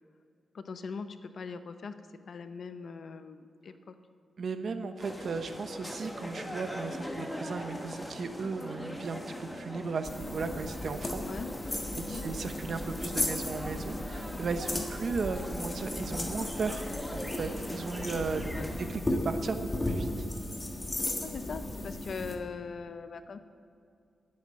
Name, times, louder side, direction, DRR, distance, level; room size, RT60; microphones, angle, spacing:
voice 1, 0.5-3.9 11.2-11.5 12.0-12.2 14.7-14.9 18.4-18.8 21.2-23.4, left 5 dB, 60° left, 10 dB, 0.7 m, -41 dB
voice 2, 4.4-11.2 12.1-16.9 17.1-18.6 18.9-20.2, right 4 dB, 60° right, 9 dB, 0.9 m, -36 dB
sound 1, 5.0-18.9, equal, 5° left, 1.7 m, -41 dB
sound 2, 10.0-22.3, left 1 dB, 20° left, 1.5 m, -35 dB
11.0 x 8.9 x 8.7 m, 2.4 s
wide cardioid pair, 110°, 0 cm